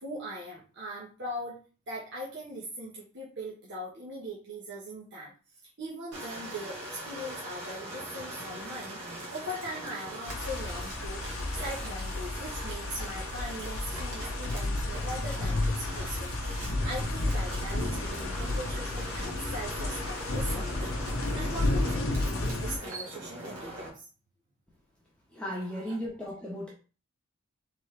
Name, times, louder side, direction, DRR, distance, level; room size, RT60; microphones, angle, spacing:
voice 1, 0.0-1.6 1.9-5.3 5.8-9.0 9.3-11.2 11.5-16.3 16.8-24.1 25.5-25.9, equal, 50° right, -6 dB, 1.3 m, -40 dB
sound 1, 6.1-23.9, right 1 dB, 75° right, 1.9 m, -42 dB
sound 2, 10.3-22.8, left 2 dB, 60° left, 0.9 m, -32 dB
voice 2, 25.3-26.7, equal, 5° left, -5 dB, 1.1 m, -35 dB
4.0 x 3.7 x 3.3 m, 0.36 s
head